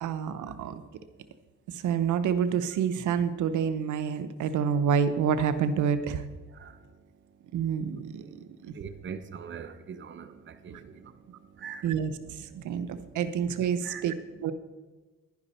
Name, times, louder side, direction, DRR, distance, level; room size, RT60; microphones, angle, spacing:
voice 1, 0.0-0.8 1.7-6.2 7.5-8.4 8.6-8.7 10.7-10.8 11.3-11.4 11.8-14.1 14.4-14.5, right 7 dB, 75° right, 0.8 m, -28 dB
voice 2, 8.7-11.1 11.6-12.1 12.4-14.5, right 6 dB, 40° right, 0.8 m, -44 dB
11.0 x 10.5 x 4.2 m
cardioid pair, 90°, 30 cm